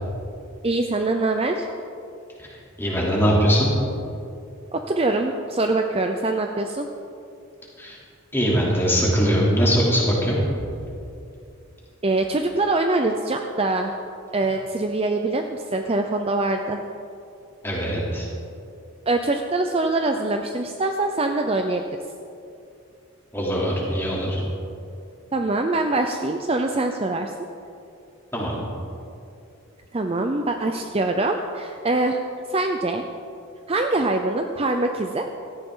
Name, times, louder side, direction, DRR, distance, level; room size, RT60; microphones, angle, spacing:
voice 1, 0.6-1.7 4.7-6.9 12.0-13.9 14.3-16.8 19.1-21.8 25.3-27.3 29.9-32.2 32.5-33.0 33.7-35.3, right 2 dB, 25° right, 4 dB, 0.5 m, -23 dB
voice 2, 2.8-3.7 7.8-8.0 8.3-10.4 17.6-18.3 23.3-24.4 28.3-28.6, equal, 10° left, -5 dB, 3.0 m, -21 dB
17.0 x 13.5 x 3.8 m, 2.5 s
head